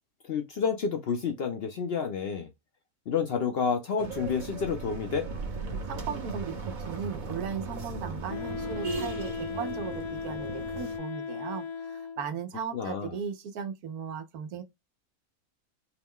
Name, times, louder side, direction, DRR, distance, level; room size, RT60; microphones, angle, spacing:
voice 1, 0.3-2.5 3.1-5.3 12.7-13.1, left 6 dB, 60° left, 0.7 m, -29 dB
sound 1, 4.0-11.0, right 3 dB, 40° right, 0.8 m, -37 dB
voice 2, 5.9-14.6, right 6 dB, 85° right, 1.2 m, -37 dB
Wind instrument woodwind instrument, 8.3-12.4, left 6 dB, 75° left, 1.4 m, -37 dB
4.6 x 2.2 x 3.6 m
omnidirectional pair, 1.5 m